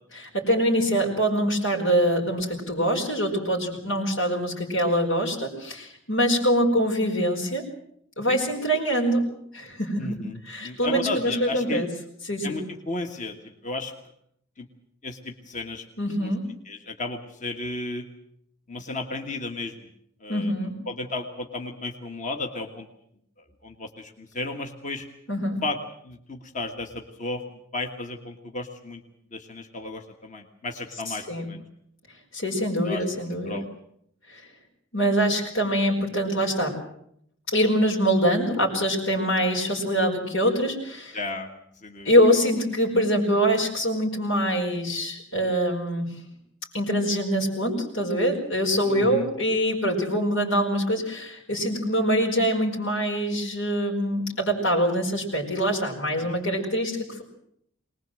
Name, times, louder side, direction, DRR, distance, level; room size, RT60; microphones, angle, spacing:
voice 1, 0.1-7.6 8.2-9.2 9.5-10.2 10.4-11.9 12.2-12.6 16.0-16.5 20.3-20.7 25.3-25.6 31.1-31.5 32.3-33.6 34.3-34.4 34.9-36.8 37.5-41.2 42.0-46.1 46.7-57.2, equal, 80° left, -3 dB, 4.9 m, -24 dB
voice 2, 10.0-11.9 12.4-13.9 14.6-14.7 15.0-15.9 16.2-16.3 16.7-18.1 18.7-19.9 20.2-20.5 20.9-22.9 23.6-25.1 25.6-25.8 26.0-27.5 27.7-29.0 29.3-31.6 32.8-33.0 33.4-33.6 41.1-42.1 48.9-49.3 56.2-56.4, left 2 dB, 35° left, 4 dB, 1.6 m, -34 dB
23.0 x 20.5 x 7.7 m, 0.72 s
head